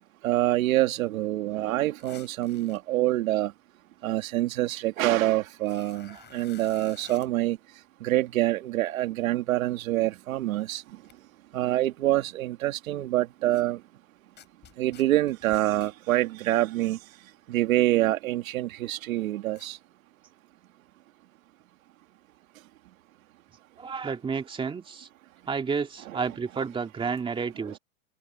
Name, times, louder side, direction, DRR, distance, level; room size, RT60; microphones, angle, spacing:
voice 1, 0.2-3.5 4.0-7.6 8.0-10.8 11.5-13.8 14.8-17.0 17.5-19.8 26.1-26.2 27.6-27.8, right 15 dB, 80° right, 2.4 m, -26 dB
sound 1, 2.0-2.8 5.0-5.1 5.6-7.3 10.7-10.8 11.0-11.1 13.5-13.6 14.4-15.9 19.6-19.7, left 10 dB, 25° left, 7.7 m, -52 dB
voice 2, 23.8-25.1 25.5-27.8, right 5 dB, 10° right, 2.2 m, -31 dB
supercardioid pair, 150°, 41 cm